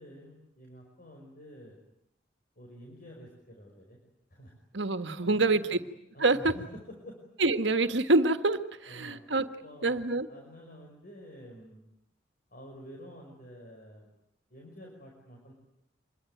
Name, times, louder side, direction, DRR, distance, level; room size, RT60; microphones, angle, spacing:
voice 1, 0.0-1.8 2.6-4.0 4.3-4.5 5.2-5.8 6.1-6.7 7.1-7.2 8.9-9.2 9.6-11.8 12.5-14.1 14.5-15.5, equal, 50° left, 0 dB, 5.7 m, -49 dB
voice 2, 4.7-5.8 6.2-6.5 7.4-9.5 9.8-10.3, right 2 dB, 80° right, 9 dB, 1.6 m, -26 dB
26.0 x 22.0 x 9.3 m, 0.79 s
head